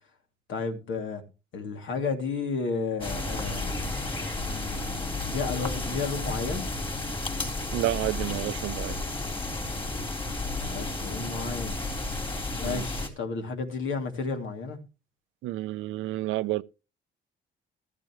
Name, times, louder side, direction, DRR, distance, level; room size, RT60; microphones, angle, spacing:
voice 1, 0.5-1.2 1.5-4.0 4.3-6.7 10.5-11.8 12.6-14.8, left 4 dB, 75° left, 2.8 m, -33 dB
sound 1, 3.0-13.1, left 2 dB, 25° left, 3.6 m, -32 dB
voice 2, 7.7-9.0 12.6-12.9 15.4-16.6, right 16 dB, 85° right, 0.6 m, -30 dB
13.5 x 13.5 x 3.1 m
cardioid pair, 90°, 20 cm